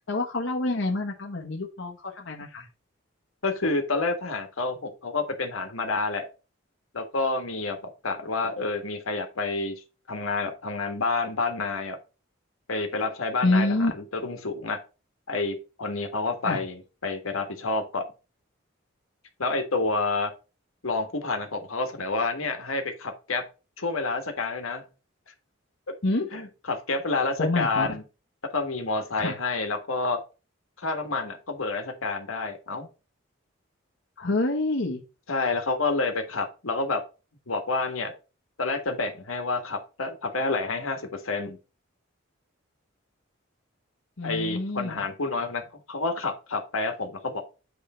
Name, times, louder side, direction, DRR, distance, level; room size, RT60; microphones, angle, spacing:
voice 1, 0.1-2.7 13.4-13.9 16.4-16.6 26.0-26.3 27.4-28.0 29.2-29.4 34.2-35.0 44.2-45.0, left 2 dB, 65° left, 0 dB, 1.2 m, -27 dB
voice 2, 3.4-6.3 6.9-12.0 12.7-13.7 14.1-14.8 15.3-18.1 19.4-20.3 20.8-23.4 23.8-24.9 25.9-26.0 26.3-28.0 28.5-30.2 30.8-32.9 35.3-37.0 37.5-38.1 38.6-41.6 44.2-47.4, left 3 dB, 90° left, 6 dB, 1.5 m, -29 dB
8.4 x 3.3 x 5.6 m, 0.32 s
head